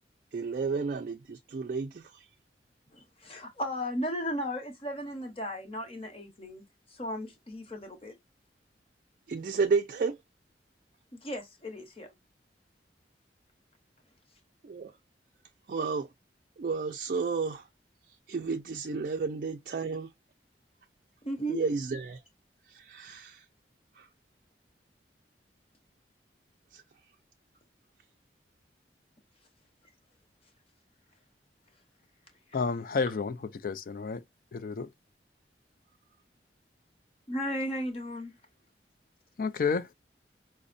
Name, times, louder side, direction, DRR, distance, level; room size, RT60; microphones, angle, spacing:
voice 1, 0.3-2.3 9.3-10.2 14.6-14.9 15.7-16.1 16.6-17.7 18.3-20.1 21.5-22.2 22.6-23.5 23.9-24.1 26.7-27.1, right 4 dB, 50° right, 0.3 m, -32 dB
voice 2, 2.9-6.6 6.9-8.1 11.1-12.1 21.2-21.6 37.3-38.3, equal, 35° left, 0.9 m, -35 dB
voice 3, 32.5-33.4 33.6-34.2 34.5-34.9 39.4-39.9, left 5 dB, 50° left, 0.4 m, -30 dB
5.0 x 2.0 x 2.5 m
head